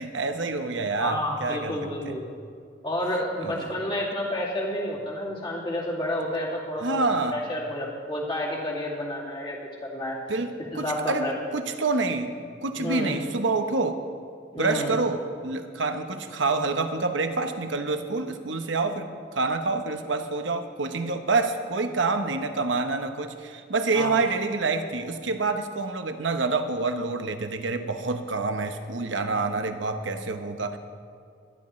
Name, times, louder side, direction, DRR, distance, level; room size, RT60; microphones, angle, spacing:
voice 1, 0.0-2.2 3.4-3.6 6.8-7.4 10.3-12.3 12.6-14.0 14.6-30.8, right 3 dB, 85° right, 7 dB, 1.0 m, -27 dB
voice 2, 1.0-2.2 2.8-7.0 7.3-10.2 10.7-11.3 12.7-13.1 14.5-14.9 23.9-24.2, left 1 dB, 25° left, -4 dB, 2.5 m, -30 dB
22.5 x 11.5 x 3.2 m, 2.3 s
head